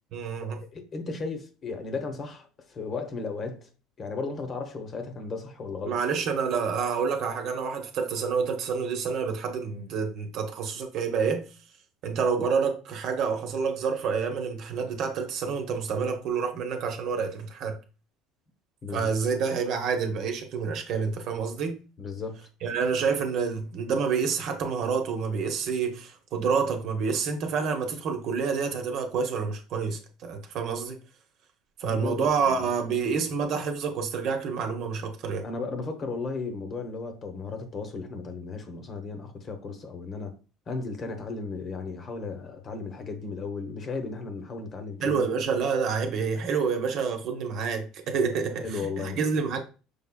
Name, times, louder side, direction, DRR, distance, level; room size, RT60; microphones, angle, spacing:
voice 1, 0.1-0.6 5.9-11.5 12.0-17.8 18.9-21.8 22.6-31.0 31.8-35.4 45.0-49.6, right 5 dB, 60° right, 0.9 m, -28 dB
voice 2, 0.7-3.7 4.0-6.0 18.8-19.1 22.0-22.5 31.8-32.7 35.4-40.3 40.7-45.2 48.3-49.2, left 4 dB, 35° left, 0.9 m, -35 dB
5.6 x 3.5 x 2.2 m
supercardioid pair, 115°, 0 cm